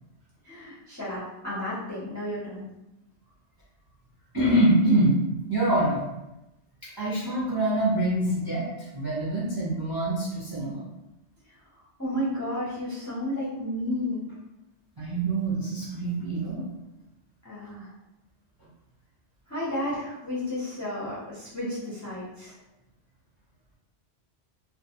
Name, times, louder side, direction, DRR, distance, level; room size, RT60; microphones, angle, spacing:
voice 1, 0.4-2.7 12.0-14.3 17.4-17.9 19.5-22.5, left 1 dB, 20° left, -8 dB, 0.6 m, -32 dB
voice 2, 4.3-5.2 5.5-6.1 7.0-8.7 8.9-10.8 15.0-16.6, right 1 dB, 30° right, -7 dB, 0.5 m, -25 dB
2.3 x 2.3 x 2.8 m, 0.92 s
omnidirectional pair, 1.1 m